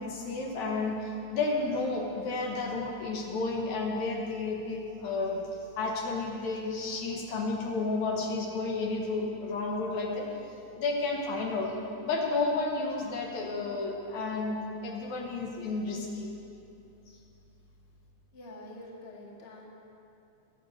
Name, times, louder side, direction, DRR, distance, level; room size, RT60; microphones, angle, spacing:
voice 1, 0.0-5.4 5.8-10.3 10.8-11.7 12.0-16.3, left 3 dB, 65° left, 0 dB, 2.7 m, -31 dB
voice 2, 18.3-19.7, left 1 dB, 25° left, -2 dB, 1.4 m, -46 dB
20.0 x 7.7 x 6.6 m, 2.8 s
omnidirectional pair, 3.7 m